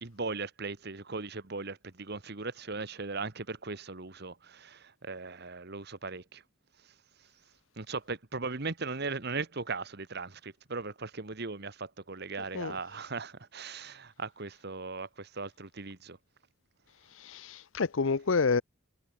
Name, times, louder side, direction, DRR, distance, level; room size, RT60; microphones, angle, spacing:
voice 1, 0.0-6.4 7.8-16.2, right 4 dB, 50° right, 1.5 m, -38 dB
voice 2, 17.2-18.6, left 4 dB, 70° left, 0.7 m, -28 dB
head